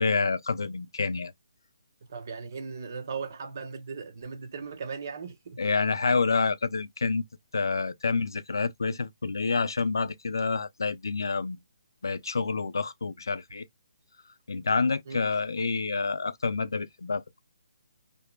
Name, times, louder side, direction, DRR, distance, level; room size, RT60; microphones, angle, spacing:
voice 1, 0.0-1.3 5.6-7.3 7.5-11.6 12.0-13.7 14.5-17.4, left 4 dB, 85° left, 0.4 m, -28 dB
voice 2, 2.0-5.6 15.1-15.2, right 5 dB, 50° right, 0.7 m, -38 dB
2.6 x 2.1 x 2.2 m
hypercardioid pair, 160°, 2 cm